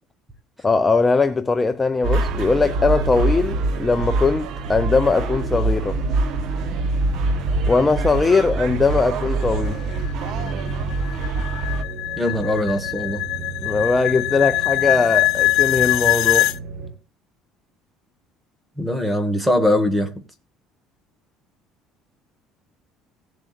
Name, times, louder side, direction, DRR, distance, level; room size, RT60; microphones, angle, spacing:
voice 1, 0.6-6.0 7.7-9.8 13.6-16.5, left 4 dB, 15° left, 0.5 m, -20 dB
sound 1, 2.0-11.8, right 3 dB, 60° right, 1.1 m, -24 dB
sound 2, 9.4-16.6, left 19 dB, 70° left, 0.4 m, -22 dB
sound 3, 11.8-16.9, right 4 dB, 45° right, 5.8 m, -35 dB
voice 2, 12.2-13.2 18.8-20.1, left 1 dB, 5° right, 1.7 m, -21 dB
17.5 x 7.5 x 2.5 m
cardioid pair, 135°, 0 cm